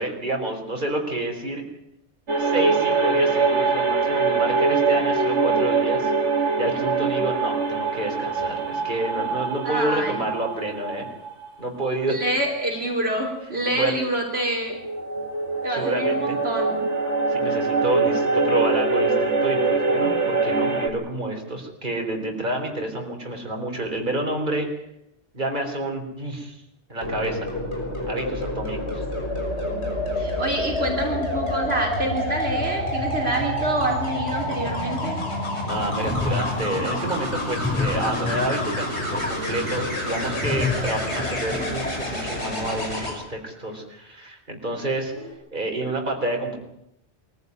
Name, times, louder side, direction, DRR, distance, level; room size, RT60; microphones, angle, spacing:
voice 1, 0.0-1.6 2.4-6.1 6.6-11.1 11.6-12.2 13.7-13.9 15.7-16.4 17.3-24.7 25.3-26.6 26.9-27.4 28.1-29.0 35.7-45.1 45.5-46.6, right 1 dB, 45° right, 2 dB, 4.2 m, -29 dB
sound 1, 2.3-11.5 11.8-11.9 14.1-20.9, right 4 dB, 80° right, 2.3 m, -23 dB
voice 2, 9.6-10.2 12.1-14.8 15.6-16.8 29.6-29.9 30.2-35.2, right 1 dB, 60° right, 0 dB, 3.5 m, -27 dB
sound 2, 27.0-43.1 45.0-45.3, left 1 dB, 70° left, 6.4 m, -28 dB
sound 3, 35.8-39.3 40.4-42.1, left 3 dB, 10° left, 1.5 m, -29 dB
23.5 x 15.0 x 9.7 m, 0.80 s
omnidirectional pair, 1.2 m